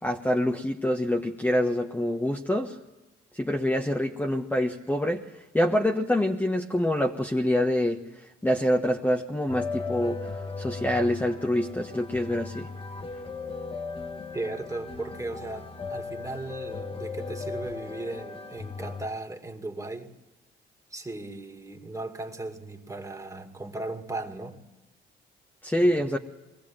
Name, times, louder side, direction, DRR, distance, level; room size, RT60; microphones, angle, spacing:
voice 1, 0.0-2.8 3.3-5.2 5.5-8.0 8.4-12.7 25.6-26.2, left 1 dB, 10° left, 1 dB, 1.3 m, -26 dB
sound 1, 9.5-19.1, left 4 dB, 25° left, 1.3 m, -37 dB
voice 2, 14.3-20.1 20.9-24.6 25.8-25.9, right 2 dB, 15° right, 4 dB, 2.4 m, -37 dB
22.5 x 15.5 x 8.9 m, 1.1 s
cardioid pair, 90°, 20 cm